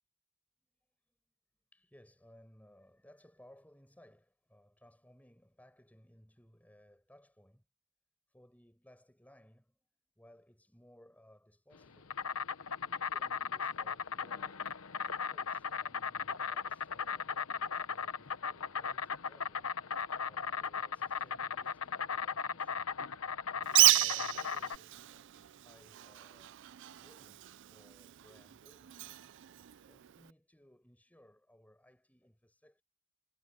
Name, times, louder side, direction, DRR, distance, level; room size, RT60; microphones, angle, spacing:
voice 1, 1.7-7.6 8.3-9.8 10.2-12.2 12.8-14.6 15.3-19.8 20.2-22.9 23.5-26.6 26.9-27.4 27.7-29.0 29.8-32.8, equal, 5° left, 5.8 m, -62 dB
Insect, 11.7-24.8, left 6 dB, 75° left, 1.0 m, -37 dB
Bird, 23.6-30.3, right 17 dB, 60° right, 0.4 m, -32 dB
head